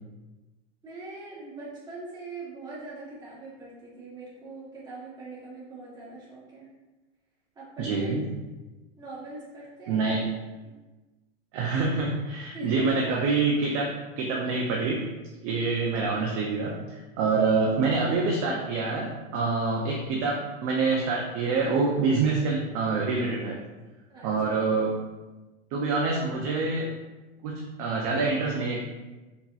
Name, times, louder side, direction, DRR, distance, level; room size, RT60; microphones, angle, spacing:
voice 1, 0.8-6.7 7.6-8.1 9.0-10.0 10.6-10.7 12.5-12.9 24.1-24.5, right 2 dB, 15° right, -7 dB, 0.8 m, -42 dB
voice 2, 7.8-8.2 9.9-10.3 11.5-13.9 14.2-15.0 15.4-23.6 24.2-24.9 25.7-26.9 27.4-28.8, right 4 dB, 35° right, -2 dB, 0.4 m, -26 dB
3.9 x 2.8 x 2.3 m, 1.2 s
supercardioid pair, 155°, 31 cm